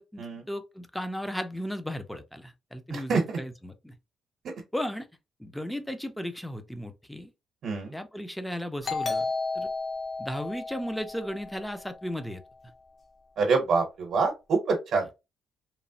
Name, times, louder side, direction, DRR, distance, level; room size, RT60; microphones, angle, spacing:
voice 1, 0.0-3.9 4.7-5.1 5.4-7.3 7.9-9.2 9.5-9.7 10.2-12.4, equal, 5° left, 0.5 m, -35 dB
voice 2, 2.9-3.4 7.6-7.9 13.4-15.1, right 4 dB, 70° right, 0.8 m, -26 dB
Doorbell, 8.8-12.2, left 3 dB, 45° left, 0.8 m, -33 dB
3.0 x 2.0 x 2.6 m
cardioid pair, 90°, 0 cm